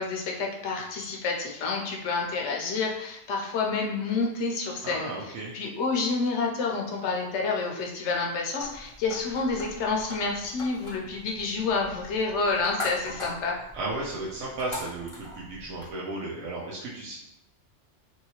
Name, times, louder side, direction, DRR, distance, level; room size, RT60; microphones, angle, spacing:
voice 1, 0.0-5.1 5.5-13.6, left 4 dB, 75° left, 0 dB, 0.8 m, -29 dB
voice 2, 4.8-5.5 13.7-17.1, right 2 dB, 85° right, -5 dB, 0.9 m, -34 dB
sound 1, 8.6-15.9, left 2 dB, 30° left, 0.7 m, -41 dB
2.9 x 2.8 x 2.8 m, 0.80 s
omnidirectional pair, 1.2 m